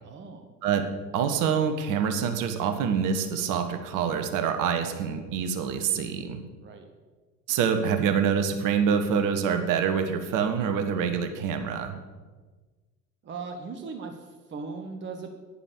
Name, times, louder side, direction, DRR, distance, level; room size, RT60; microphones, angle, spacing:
voice 1, 0.0-0.5 6.6-6.9 13.2-15.3, right 4 dB, 25° right, 6 dB, 1.3 m, -38 dB
voice 2, 1.1-6.4 7.5-12.0, right 7 dB, 40° right, 7 dB, 1.5 m, -26 dB
11.0 x 10.0 x 6.8 m, 1.4 s
figure-of-eight pair, 80°, 48 cm